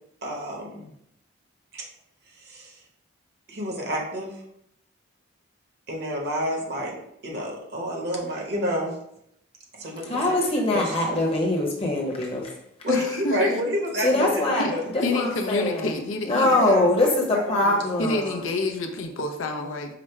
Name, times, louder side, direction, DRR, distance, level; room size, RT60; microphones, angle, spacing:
voice 1, 0.2-0.9 1.7-1.9 2.3-2.8 3.5-4.4 5.9-6.9 7.2-9.0 9.7-11.2 12.8-14.8 16.4-16.9 17.3-18.0, equal, 50° right, -1 dB, 1.1 m, -30 dB
voice 2, 10.1-12.5 14.0-14.7 14.9-15.9 16.2-18.4, left 2 dB, 30° left, -2 dB, 0.9 m, -23 dB
voice 3, 12.9-13.5 14.6-14.7 15.0-16.8 18.0-19.9, left 2 dB, 75° left, 4 dB, 0.6 m, -28 dB
4.9 x 2.1 x 4.5 m, 0.76 s
head